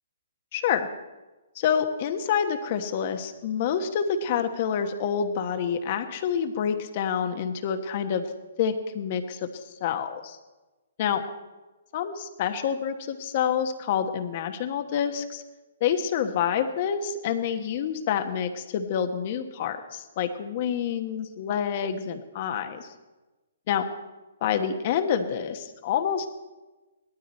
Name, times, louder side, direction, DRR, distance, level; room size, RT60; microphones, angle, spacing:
voice 1, 0.5-0.9 1.5-8.2 8.6-9.4 9.8-10.4 11.0-11.2 11.9-15.4 15.8-22.9 23.7-23.9 24.4-26.3, left 8 dB, 45° left, 6 dB, 1.2 m, -27 dB
17.5 x 12.5 x 4.3 m, 1.1 s
hypercardioid pair, 140°, 0 cm